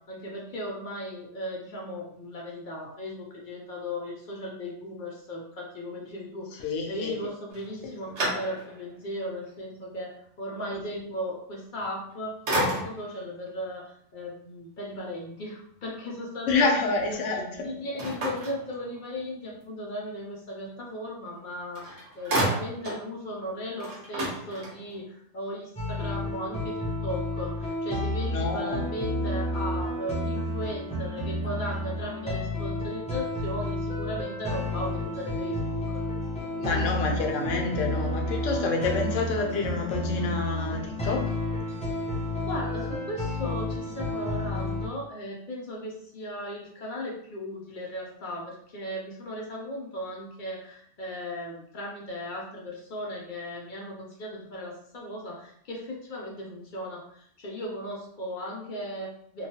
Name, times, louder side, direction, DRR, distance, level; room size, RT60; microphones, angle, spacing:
voice 1, 0.1-16.7 17.1-17.4 17.6-36.0 42.5-59.5, left 1 dB, 55° left, -2 dB, 0.6 m, -37 dB
voice 2, 6.6-7.2 10.7-10.8 16.5-17.7 28.3-28.8 36.6-41.2, left 4 dB, 75° left, 2 dB, 1.0 m, -28 dB
sound 1, 7.5-8.9 9.5-9.6 11.8-12.1 12.5-13.2 18.0-19.3 21.4-21.5 21.7-23.1 23.4-23.5 23.8-25.0, right 1 dB, 80° right, 1.3 m, -31 dB
sound 2, 25.8-44.9, left 1 dB, 10° left, 0.3 m, -31 dB
2.9 x 2.2 x 2.7 m, 0.67 s
omnidirectional pair, 1.3 m